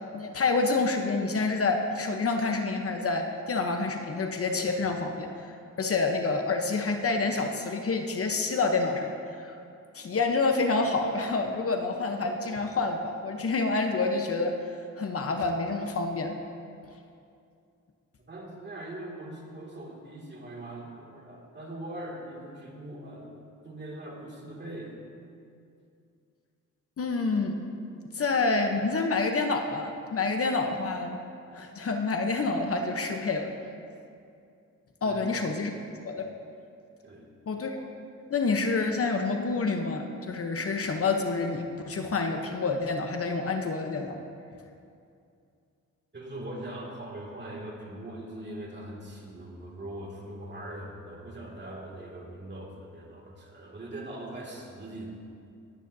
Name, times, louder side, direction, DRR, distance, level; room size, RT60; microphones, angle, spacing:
voice 1, 0.1-5.5 5.8-9.1 9.4-9.6 9.9-14.5 15.0-16.3 27.0-27.6 28.1-31.2 31.5-33.5 35.0-35.7 36.0-36.3 37.5-37.8 38.3-44.2, left 3 dB, 45° left, 4 dB, 0.9 m, -28 dB
voice 2, 18.2-25.0 35.0-35.3 37.0-37.3 46.1-55.1, right 1 dB, 35° right, -2 dB, 2.3 m, -41 dB
20.5 x 9.2 x 2.7 m, 2.5 s
cardioid pair, 85°, 31 cm